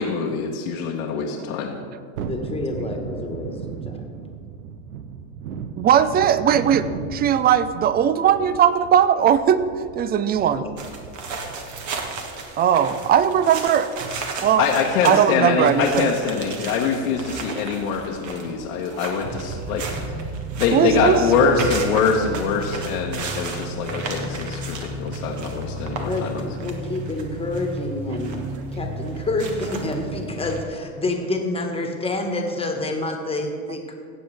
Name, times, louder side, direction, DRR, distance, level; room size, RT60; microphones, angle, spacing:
voice 1, 0.0-1.8 14.6-19.8 20.6-26.4, left 5 dB, 80° left, -1 dB, 1.3 m, -23 dB
Thunderstorm, 2.2-12.4 12.7-12.8, right 7 dB, 90° right, 0.8 m, -36 dB
voice 2, 2.3-4.1 10.6-10.7 26.0-28.4 28.7-33.9, left 2 dB, 15° left, 3 dB, 1.5 m, -28 dB
voice 3, 5.8-9.6 9.9-10.7 12.6-13.9 14.4-14.7 15.0-16.1 20.7-21.2, right 9 dB, 25° right, 14 dB, 0.4 m, -18 dB
sound 1, 10.8-30.6, right 2 dB, 45° right, 1.6 m, -33 dB
16.5 x 7.8 x 3.4 m, 2.1 s
supercardioid pair, 110°, 42 cm